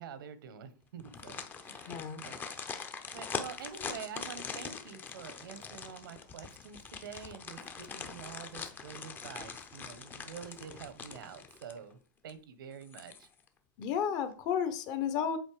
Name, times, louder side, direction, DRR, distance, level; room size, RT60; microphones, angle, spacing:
voice 1, 0.0-2.4 2.9-12.0 12.2-13.3, right 7 dB, 80° right, 13 dB, 1.2 m, -47 dB
sound 1, 1.0-11.9 12.3-12.4 12.8-13.5 13.8-13.9, left 5 dB, 15° left, 0.7 m, -43 dB
voice 2, 1.9-2.2 13.8-15.4, left 8 dB, 35° left, 10 dB, 1.0 m, -32 dB
8.1 x 4.2 x 4.9 m, 0.38 s
supercardioid pair, 150°, 11 cm